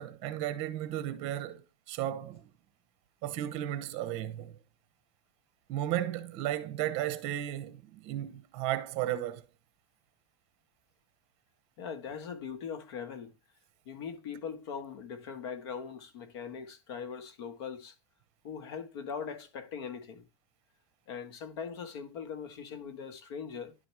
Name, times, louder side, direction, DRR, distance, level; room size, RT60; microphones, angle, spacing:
voice 1, 0.0-2.5 3.2-4.6 5.7-9.4, right 12 dB, 45° right, 0.9 m, -34 dB
voice 2, 11.8-13.3 13.8-17.9 18.4-20.2 21.1-23.7, left 6 dB, 65° left, 1.6 m, -41 dB
11.0 x 4.4 x 4.8 m
supercardioid pair, 160°, 15 cm